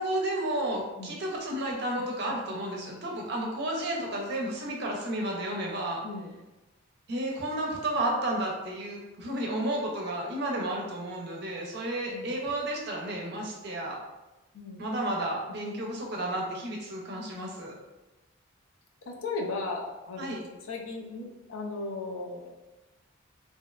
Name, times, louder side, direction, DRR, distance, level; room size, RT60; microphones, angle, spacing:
voice 1, 0.0-6.0 7.1-14.0 14.8-17.7 20.2-20.4, right 1 dB, 50° right, -1 dB, 0.5 m, -32 dB
voice 2, 14.5-14.9 19.1-20.4 20.7-22.5, left 3 dB, 65° left, 0 dB, 0.4 m, -36 dB
2.6 x 2.0 x 2.3 m, 1.1 s
head